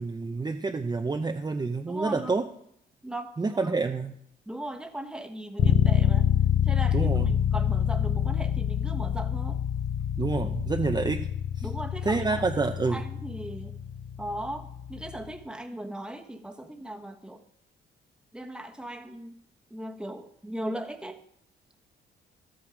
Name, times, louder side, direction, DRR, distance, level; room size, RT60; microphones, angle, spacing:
voice 1, 0.0-2.4 3.4-4.1 6.9-7.4 10.2-11.3 11.5-11.7 12.0-13.0, right 3 dB, 20° right, 4 dB, 0.7 m, -28 dB
voice 2, 1.9-2.4 3.0-3.7 4.5-6.3 6.6-9.6 11.6-12.2 12.9-13.7 14.2-17.4 18.3-19.3 19.7-21.2, right 1 dB, 5° right, 4 dB, 1.3 m, -38 dB
sound 1, 5.6-15.3, left 9 dB, 55° left, 1.0 m, -27 dB
13.0 x 8.8 x 5.1 m, 0.71 s
cardioid pair, 90°, 20 cm